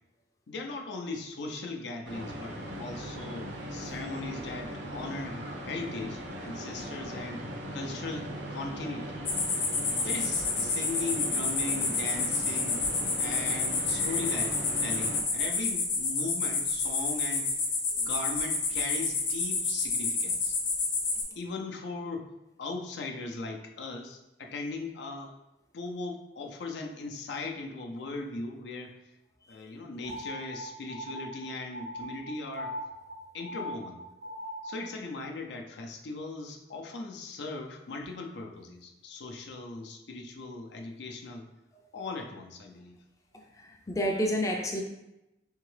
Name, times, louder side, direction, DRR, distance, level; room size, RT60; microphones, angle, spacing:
voice 1, 0.5-7.4 7.7-9.2 10.0-12.8 13.2-17.5 18.0-20.6 21.4-22.3 22.6-25.3 25.7-28.9 29.5-32.7 33.3-34.0 34.6-41.5 41.9-43.0, left 3 dB, 80° left, 2 dB, 0.5 m, -38 dB
sound 1, 2.0-15.2, equal, 85° right, 0.7 m, -39 dB
sound 2, 9.2-21.2, left 4 dB, 50° left, 0.9 m, -29 dB
sound 3, 30.0-34.9, equal, 55° right, 0.4 m, -40 dB
voice 2, 43.6-44.8, equal, 20° left, 1 dB, 0.4 m, -30 dB
3.6 x 3.4 x 3.2 m, 0.93 s
head